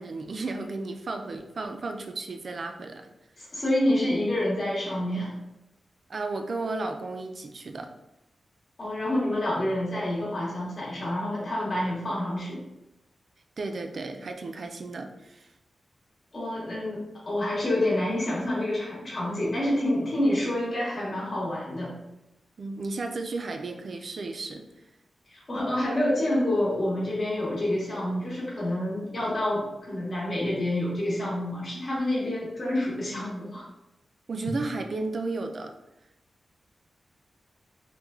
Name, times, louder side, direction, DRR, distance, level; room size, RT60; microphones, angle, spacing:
voice 1, 0.0-3.1 6.1-7.9 13.6-15.5 22.6-24.7 34.3-35.7, right 3 dB, 45° right, 5 dB, 0.3 m, -33 dB
voice 2, 3.4-5.3 8.8-12.6 16.3-21.9 25.3-33.6, left 1 dB, 35° left, -6 dB, 0.9 m, -28 dB
3.1 x 2.2 x 3.4 m, 0.91 s
wide cardioid pair, 165°, 0 cm